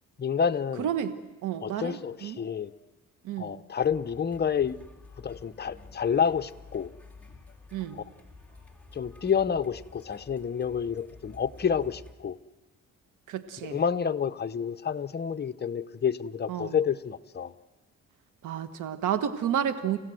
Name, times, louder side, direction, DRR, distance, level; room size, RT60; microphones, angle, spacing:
voice 1, 0.2-0.9 1.6-2.7 3.4-4.8 5.2-7.0 8.9-12.4 13.6-17.5, left 7 dB, 35° left, 9 dB, 0.9 m, -29 dB
voice 2, 0.8-1.2 1.4-2.4 3.2-3.5 7.7-8.0 13.3-13.8 16.5-16.7 18.4-20.0, right 9 dB, 85° right, 11 dB, 1.4 m, -31 dB
sound 1, 3.8-12.1, left 3 dB, 5° left, 3.4 m, -51 dB
30.0 x 15.5 x 7.8 m, 1.2 s
cardioid pair, 90°, 30 cm